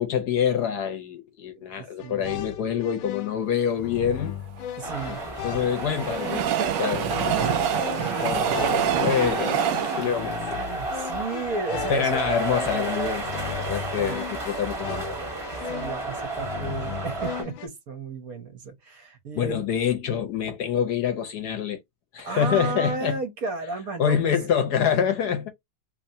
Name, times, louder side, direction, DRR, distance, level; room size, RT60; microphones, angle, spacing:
voice 1, 0.0-4.3 5.1-6.4 6.8-7.0 8.2-10.6 11.9-15.2 19.3-21.8 22.1-23.2 24.0-25.5, left 8 dB, 65° left, 1.2 m, -26 dB
voice 2, 1.6-2.4 4.8-5.2 6.6-9.0 9.6-12.4 13.6-14.2 15.7-19.6 22.2-24.4, right 3 dB, 55° right, 1.4 m, -34 dB
sound 1, 2.0-17.7, left 10 dB, 85° left, 1.4 m, -37 dB
Train, 4.6-11.9 12.4-12.5 12.7-12.8, right 10 dB, 75° right, 1.2 m, -28 dB
sound 2, 4.8-17.4, right 2 dB, 20° right, 1.4 m, -32 dB
3.5 x 3.2 x 2.6 m
omnidirectional pair, 2.1 m